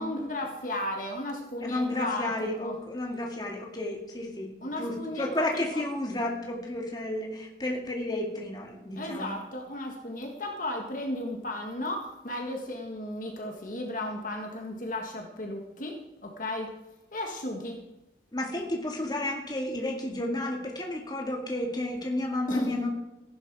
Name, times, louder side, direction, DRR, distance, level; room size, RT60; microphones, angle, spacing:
voice 1, 0.0-2.7 4.6-5.8 9.0-15.9 16.2-16.7 17.1-17.8 22.5-22.8, left 1 dB, 45° left, 2 dB, 1.6 m, -34 dB
voice 2, 1.6-9.3 18.3-22.9, left 1 dB, 25° left, 1 dB, 2.2 m, -32 dB
15.0 x 11.5 x 4.8 m, 0.95 s
head